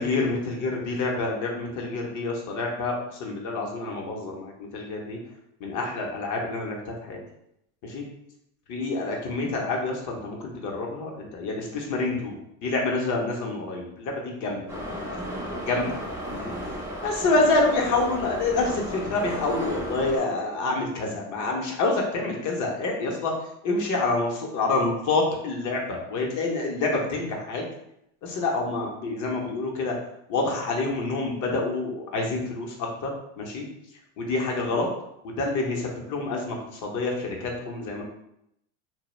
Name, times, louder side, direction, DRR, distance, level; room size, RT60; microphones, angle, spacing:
voice 1, 0.0-2.9 3.2-5.2 5.6-7.2 7.8-8.0 8.7-12.4 12.6-14.6 15.5-15.9 16.3-16.5 17.0-23.3 23.6-27.6 28.2-29.9 30.3-32.7 33.0-33.1 33.4-33.6 34.2-34.9 35.2-38.0, left 3 dB, 45° left, 0 dB, 0.7 m, -27 dB
Subway metro underground, 14.7-20.2, equal, 5° right, 0.4 m, -34 dB
2.2 x 2.0 x 3.0 m, 0.77 s
supercardioid pair, 115°, 44 cm